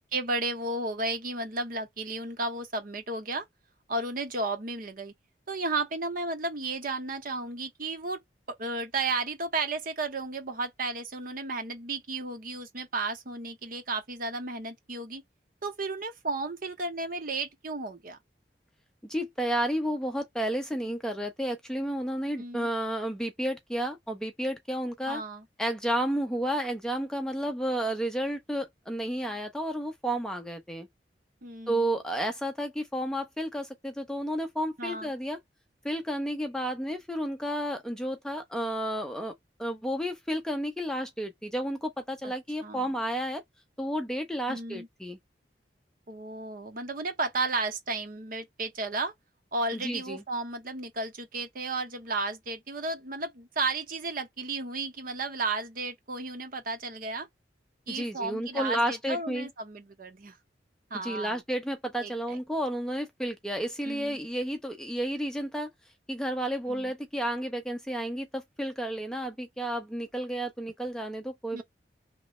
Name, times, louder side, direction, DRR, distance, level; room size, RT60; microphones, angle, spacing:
voice 1, 0.1-3.4 3.9-5.1 5.5-8.2 8.6-15.2 15.6-18.2 22.4-22.7 25.1-25.4 31.4-31.8 34.8-35.1 42.2-42.3 42.6-42.9 44.5-44.9 46.1-49.1 49.5-57.3 57.9-60.4 60.9-61.4 62.0-62.4 63.8-64.2 66.7-66.9 71.5-71.6, right 3 dB, 50° right, 0.9 m, -33 dB
voice 2, 19.0-25.2 25.6-30.9 31.7-35.4 35.8-39.3 39.6-43.4 43.8-45.2 49.8-50.2 57.9-59.5 61.0-65.7 66.1-71.6, right 1 dB, 5° left, 0.5 m, -31 dB
3.0 x 2.6 x 3.0 m
head